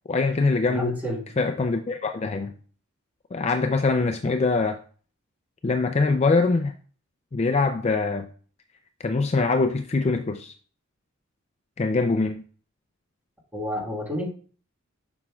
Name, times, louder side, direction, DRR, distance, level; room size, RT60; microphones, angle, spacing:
voice 1, 0.1-0.9 1.4-2.5 3.3-4.8 5.6-6.7 7.3-8.3 9.0-10.5 11.8-12.4, left 3 dB, 30° left, 0.4 m, -23 dB
voice 2, 0.7-1.4 13.5-14.3, equal, 10° right, 1.5 m, -30 dB
7.3 x 6.2 x 2.3 m
head